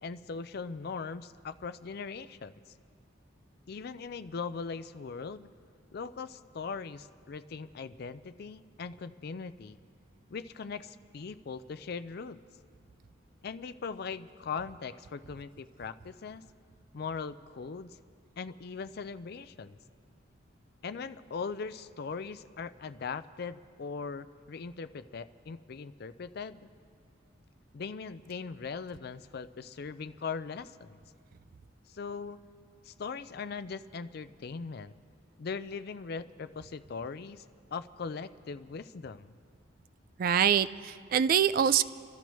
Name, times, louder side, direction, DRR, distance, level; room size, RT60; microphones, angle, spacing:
voice 1, 0.0-2.5 3.7-5.5 5.9-9.8 10.3-12.4 13.4-16.5 16.9-18.0 18.4-19.8 20.8-26.7 27.7-31.0 31.9-32.4 32.8-34.9 35.4-37.4 37.7-39.4, left 5 dB, 55° left, 14 dB, 0.4 m, -40 dB
voice 2, 40.2-41.8, right 8 dB, 45° right, 14 dB, 0.3 m, -25 dB
29.5 x 13.0 x 3.1 m, 2.2 s
head